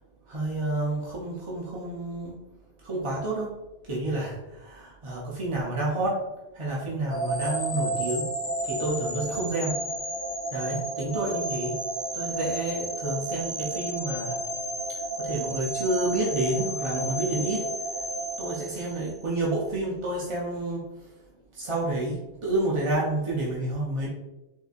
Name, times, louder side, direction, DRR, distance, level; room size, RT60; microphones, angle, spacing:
voice 1, 0.3-2.4 2.8-3.6 3.8-6.2 6.5-8.3 8.6-9.8 10.5-11.8 12.1-14.4 14.9-17.7 18.4-21.1 21.5-24.1, right 2 dB, 40° right, -5 dB, 0.4 m, -29 dB
sound 1, 7.1-19.2, right 1 dB, 10° left, 1.4 m, -32 dB
3.8 x 2.7 x 2.4 m, 1.0 s
omnidirectional pair, 1.2 m